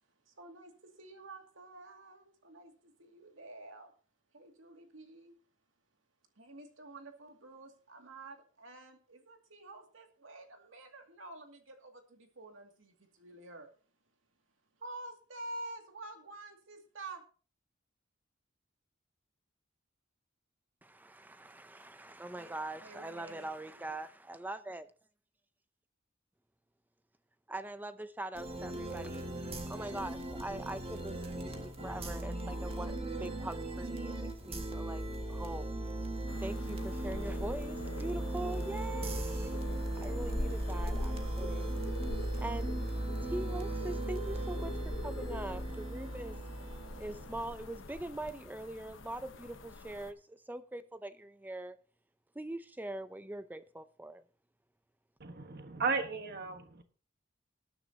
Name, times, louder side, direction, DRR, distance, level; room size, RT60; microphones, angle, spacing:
voice 1, 0.3-3.9 4.3-5.4 6.4-13.7 14.8-17.2 22.4-22.5 22.8-23.9, right 2 dB, 75° right, 2.3 m, -49 dB
voice 2, 20.8-24.9 27.5-31.6 31.8-35.8 36.4-39.5 40.0-41.7 42.4-42.8 43.2-44.7 45.0-46.4 47.0-51.8 52.3-54.2, right 1 dB, 10° right, 0.5 m, -42 dB
sound 1, 28.3-47.6, right 1 dB, 30° right, 1.8 m, -37 dB
Atmospheric wind, 36.3-50.1, left 2 dB, 70° left, 1.0 m, -44 dB
voice 3, 55.2-56.8, right 4 dB, 55° right, 1.3 m, -35 dB
19.5 x 9.9 x 2.8 m
head